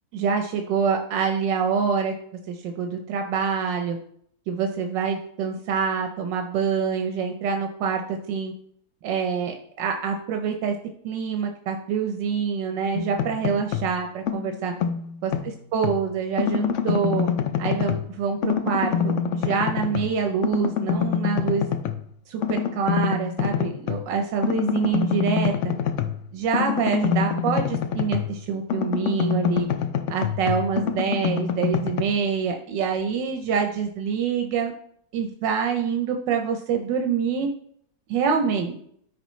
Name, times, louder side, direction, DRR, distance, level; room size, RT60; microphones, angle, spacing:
voice 1, 0.1-2.1 2.5-4.0 4.5-8.5 9.0-10.8 11.0-14.7 15.2-17.3 17.6-21.7 22.3-25.5 26.3-29.7 30.1-34.7 35.1-37.5 38.1-38.9, right 6 dB, 90° right, 4 dB, 1.5 m, -26 dB
sound 1, 12.9-13.9 14.3-16.0 16.4-18.1 18.4-20.2 20.4-22.0 22.4-24.0 24.4-28.4 28.7-32.0, left 7 dB, 65° left, 0.7 m, -26 dB
13.0 x 4.8 x 3.1 m, 0.66 s
omnidirectional pair, 1.9 m